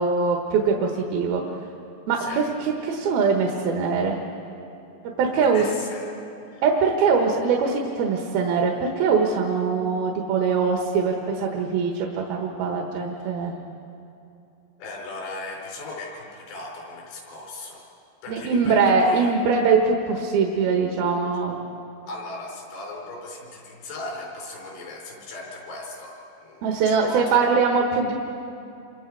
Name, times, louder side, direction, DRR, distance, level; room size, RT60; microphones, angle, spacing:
voice 1, 0.0-1.4 2.1-4.2 5.2-5.7 6.6-13.5 18.3-21.6 26.6-28.1, right 5 dB, 70° right, 1 dB, 3.2 m, -22 dB
voice 2, 2.2-2.5 5.3-6.1 6.5-6.7 14.8-17.8 18.2-19.3 22.1-27.5, left 2 dB, 85° left, -1 dB, 6.2 m, -37 dB
28.0 x 24.5 x 4.7 m, 2.7 s
omnidirectional pair, 4.8 m